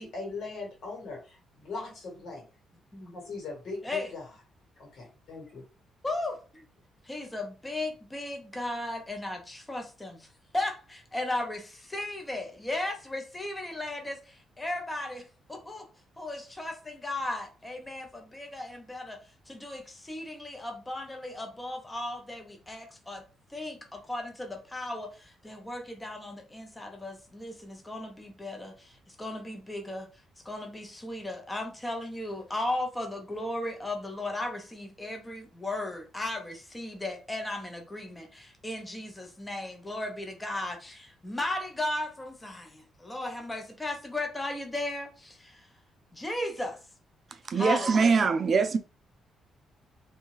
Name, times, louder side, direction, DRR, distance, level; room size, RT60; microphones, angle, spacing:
voice 1, 0.0-2.5 3.1-4.2 4.8-5.6, left 3 dB, 70° left, 1.7 m, -40 dB
voice 2, 6.0-6.6 7.0-10.3 10.5-15.9 16.2-19.2 19.5-23.2 23.5-30.1 30.4-45.7 46.1-46.8 47.6-47.9, left 1 dB, 15° left, 0.7 m, -36 dB
voice 3, 47.3-48.8, right 5 dB, 45° right, 0.4 m, -23 dB
2.7 x 2.3 x 3.1 m
cardioid pair, 90°, 0 cm